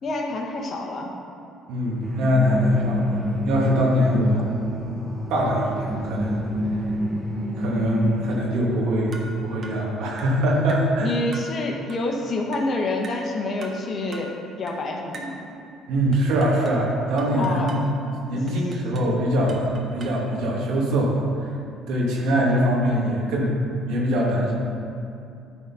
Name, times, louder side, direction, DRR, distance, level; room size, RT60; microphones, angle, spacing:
voice 1, 0.0-1.1 11.0-15.4 17.4-17.8 18.3-18.4, left 2 dB, 45° left, 1 dB, 1.4 m, -28 dB
voice 2, 1.7-3.2 3.5-4.4 5.3-6.4 7.6-11.2 15.9-19.6 19.9-21.5 21.9-23.5 23.9-24.5, equal, 75° right, -4 dB, 2.4 m, -23 dB
sound 1, 2.0-8.4, left 1 dB, 25° right, 1.7 m, -28 dB
sound 2, 9.1-9.4 9.6-9.9 10.2-10.4 10.7-10.9 11.3-11.6 11.9-12.1 12.5-12.7 13.0-13.3 13.6-13.8 14.1-14.3 14.7-14.9 15.1-15.4 16.1-16.8 17.2-17.9 18.5-19.1 19.5-20.3, right 2 dB, 45° right, 1.5 m, -42 dB
12.5 x 4.3 x 5.7 m, 2.6 s
supercardioid pair, 75°, 0 cm